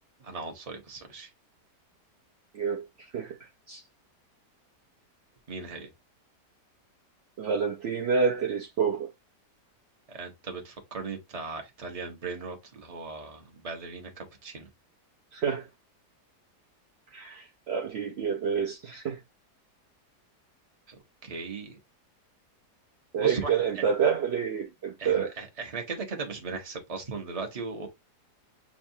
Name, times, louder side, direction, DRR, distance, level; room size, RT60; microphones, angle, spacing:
voice 1, 0.2-1.3 5.5-5.9 10.1-14.7 20.9-21.0 21.2-21.8 23.2-23.8 25.0-27.9, right 4 dB, 30° right, 0.8 m, -38 dB
voice 2, 7.4-9.1 15.3-15.7 17.1-19.2 23.1-25.3, right 6 dB, 65° right, 0.6 m, -28 dB
7.1 x 2.5 x 2.6 m
omnidirectional pair, 1.8 m